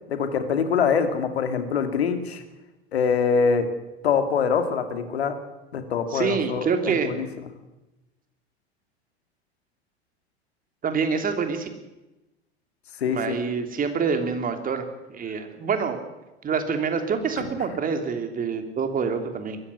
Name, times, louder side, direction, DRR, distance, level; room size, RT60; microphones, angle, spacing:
voice 1, 0.1-2.4 2.9-3.7 4.0-5.3 5.7-7.3 13.0-13.4, left 6 dB, 70° left, 8 dB, 2.7 m, -24 dB
voice 2, 6.1-7.1 10.8-11.7 13.1-14.8 15.1-16.0 16.4-19.6, right 6 dB, 25° right, 7 dB, 3.2 m, -26 dB
22.0 x 14.5 x 9.8 m, 1.0 s
figure-of-eight pair, 85°, 33 cm